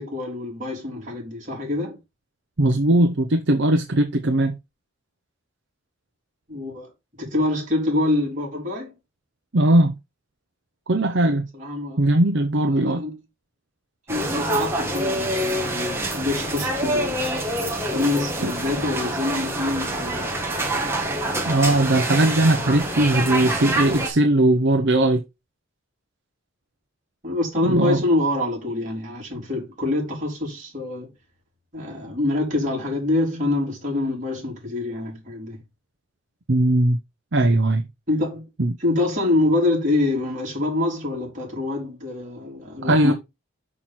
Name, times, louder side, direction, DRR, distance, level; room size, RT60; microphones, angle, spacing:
voice 1, 0.0-2.0 6.5-8.9 11.5-12.1 12.6-13.2 14.1-17.3 17.9-20.3 27.2-31.1 31.7-35.6 38.1-38.5 38.8-43.1, left 2 dB, 35° right, 3.9 m, -25 dB
voice 2, 2.6-4.6 9.5-9.9 10.9-11.4 12.0-13.0 21.4-25.2 27.6-28.0 36.5-37.0 37.3-37.8 38.6-38.7 42.8-43.1, right 1 dB, 55° right, 0.8 m, -19 dB
sound 1, 14.1-24.1, right 1 dB, 10° right, 1.9 m, -26 dB
6.2 x 6.0 x 4.2 m
head